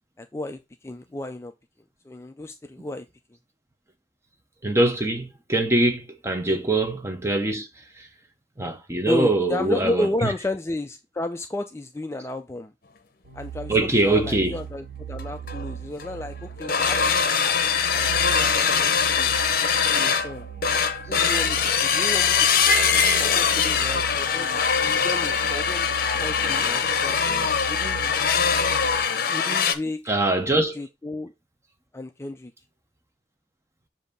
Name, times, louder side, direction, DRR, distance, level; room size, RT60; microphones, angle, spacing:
voice 1, 0.2-1.5 2.0-3.1 6.4-6.6 9.1-12.7 13.3-18.9 19.2-19.3 19.9-20.5 21.1-22.5 22.7-25.9 26.2-28.1 29.2-30.0 30.7-31.3 31.9-32.5, left 2 dB, 15° left, 0.3 m, -33 dB
voice 2, 4.6-7.7 8.0-8.1 8.6-10.3 13.7-14.6 30.0-30.7, right 2 dB, 15° right, 0.8 m, -23 dB
sound 1, 13.2-29.0, right 8 dB, 80° right, 1.2 m, -38 dB
sound 2, 15.2-15.3 15.5-15.7 16.0-16.2 16.6-29.7, left 6 dB, 50° left, 0.7 m, -22 dB
7.4 x 2.7 x 5.2 m
head